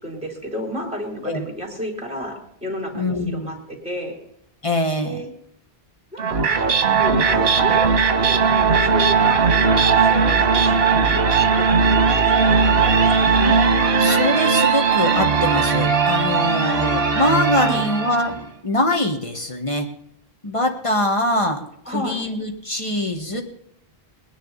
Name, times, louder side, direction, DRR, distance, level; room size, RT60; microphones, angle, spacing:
voice 1, 0.0-4.2 5.0-5.3 6.1-11.7 12.0-13.5 17.6-17.8 21.9-22.2, equal, 5° right, -1 dB, 3.6 m, -32 dB
voice 2, 2.9-3.5 4.6-5.2 12.7-12.8 14.0-19.9 20.4-23.4, left 1 dB, 30° left, 4 dB, 1.6 m, -23 dB
sound 1, 6.2-18.4, right 5 dB, 65° right, 1.4 m, -18 dB
20.0 x 10.5 x 4.1 m, 0.73 s
omnidirectional pair, 1.0 m